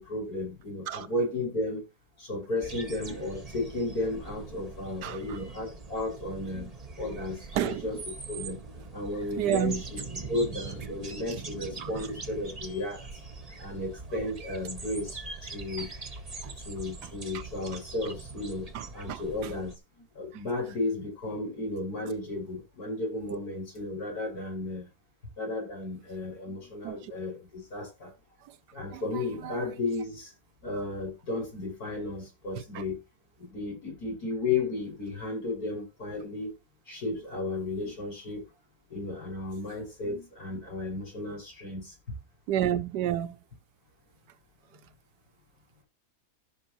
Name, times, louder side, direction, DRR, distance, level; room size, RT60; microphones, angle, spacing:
voice 1, 0.0-1.9 2.2-8.0 8.3-8.6 8.9-10.0 10.3-13.1 13.6-15.9 16.4-24.9 25.4-28.1 28.7-30.3 30.6-33.0 33.4-36.6 36.9-38.5 38.9-41.9, left 2 dB, 60° left, 6.2 m, -34 dB
sound 1, 2.6-19.8, right 3 dB, 25° right, 1.2 m, -42 dB
voice 2, 5.0-5.4 7.5-7.9 9.4-9.8 11.3-11.4 11.8-11.9 14.2-14.3 15.8-15.9 16.4-16.5 17.0-17.4 18.7-19.5 20.3-20.4 26.8-27.1 28.4-28.6 28.9-29.6 32.7-32.8 42.5-43.4, right 11 dB, 85° right, 1.4 m, -32 dB
14.0 x 6.0 x 3.0 m
omnidirectional pair, 1.8 m